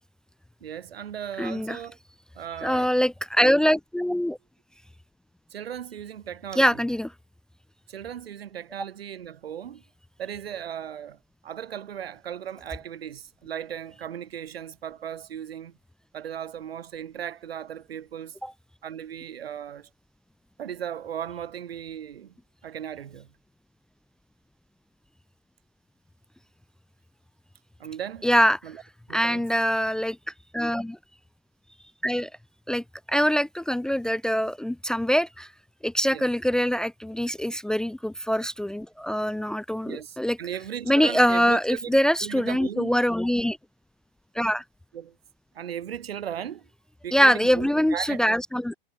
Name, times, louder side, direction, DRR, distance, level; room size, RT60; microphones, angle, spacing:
voice 1, 0.6-2.0 2.3-2.9 5.5-6.8 7.9-9.8 10.2-15.8 16.1-18.4 18.8-19.9 20.6-22.3 22.6-23.3 27.8-28.3 28.6-28.8 29.1-29.5 36.1-36.2 39.9-41.9 42.2-43.0 44.9-45.2 45.5-46.7 47.0-48.2, right 9 dB, 85° right, 6.7 m, -37 dB
voice 2, 1.4-1.8 2.6-4.4 6.6-7.1 18.4-18.5 28.2-28.6 29.1-30.2 30.5-31.0 32.0-32.3 32.7-35.5 35.8-40.4 40.9-43.6 44.3-44.6 47.1-48.8, equal, ahead, 0.8 m, -23 dB
hypercardioid pair, 145°, 29 cm